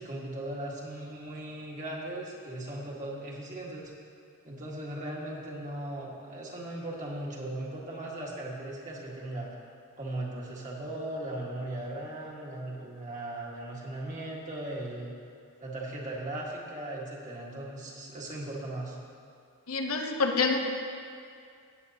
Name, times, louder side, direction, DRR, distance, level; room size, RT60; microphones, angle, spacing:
voice 1, 0.0-3.9 4.4-9.5 10.0-15.1 15.6-19.0, right 1 dB, 35° right, -4 dB, 1.8 m, -38 dB
voice 2, 19.7-20.6, left 4 dB, 80° left, 3 dB, 0.9 m, -27 dB
17.0 x 8.5 x 2.9 m, 2.3 s
head